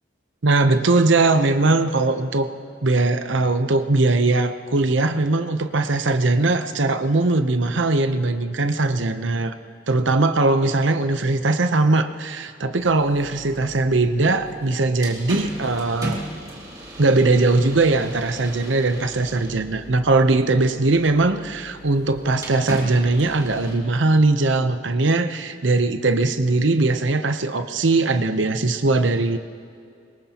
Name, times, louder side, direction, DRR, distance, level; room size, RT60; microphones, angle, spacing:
voice 1, 0.4-2.5 2.8-9.5 9.9-16.3 17.0-29.4, right 2 dB, 80° right, 9 dB, 0.8 m, -20 dB
sound 1, 12.8-23.8, right 1 dB, 20° right, 2.4 m, -37 dB
23.0 x 20.5 x 3.0 m, 2.4 s
head